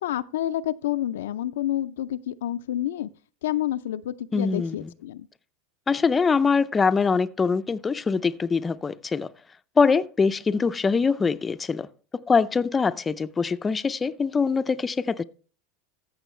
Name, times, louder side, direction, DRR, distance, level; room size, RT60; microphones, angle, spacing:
voice 1, 0.0-3.1 3.4-5.3, left 12 dB, 85° left, 0.4 m, -29 dB
voice 2, 4.3-4.9 5.9-9.3 9.8-11.9 12.3-15.2, left 5 dB, 20° left, 0.4 m, -23 dB
14.5 x 6.2 x 3.1 m
supercardioid pair, 110°, 0 cm